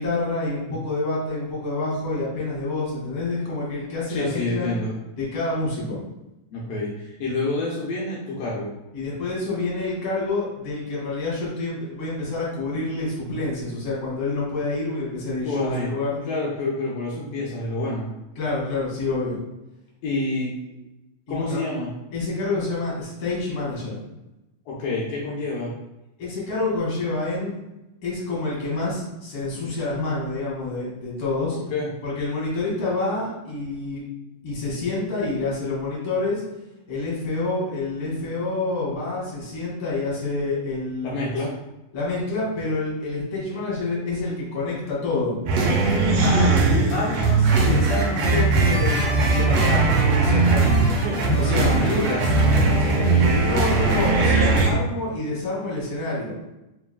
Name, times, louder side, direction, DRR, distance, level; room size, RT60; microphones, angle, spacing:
voice 1, 0.0-4.7 5.2-6.0 8.9-16.2 18.4-19.4 21.3-21.6 22.1-24.0 26.2-27.5 28.0-31.6 32.0-34.0 34.4-36.4 36.9-41.3 41.9-45.4 50.2-50.9 51.3-51.8 53.4-56.4, left 2 dB, 50° left, -6 dB, 2.1 m, -27 dB
voice 2, 4.1-4.9 6.5-8.7 15.4-15.9 16.3-18.1 20.0-20.5 21.3-21.9 24.7-25.7 31.5-31.9 41.0-41.5 46.2-49.0 49.3-50.1 51.5-53.5, left 2 dB, 75° left, -5 dB, 1.5 m, -28 dB
sound 1, 45.5-54.7, right 3 dB, 85° right, 1.3 m, -19 dB
4.7 x 3.5 x 2.2 m, 0.95 s
omnidirectional pair, 3.6 m